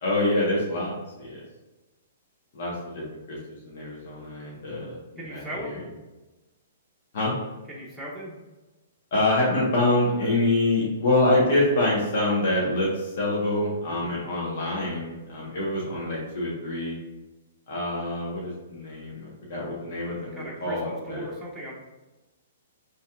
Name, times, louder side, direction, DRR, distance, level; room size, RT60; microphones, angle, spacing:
voice 1, 0.0-0.9 1.2-1.4 2.5-3.4 3.6-5.9 7.1-7.3 9.1-16.9 17.7-21.2, left 2 dB, 55° left, -5 dB, 1.4 m, -26 dB
voice 2, 5.2-5.8 7.7-8.4 13.9-14.2 20.3-21.7, right 1 dB, 5° right, -5 dB, 1.3 m, -38 dB
5.4 x 3.2 x 2.5 m, 1.1 s
figure-of-eight pair, 115°, 0 cm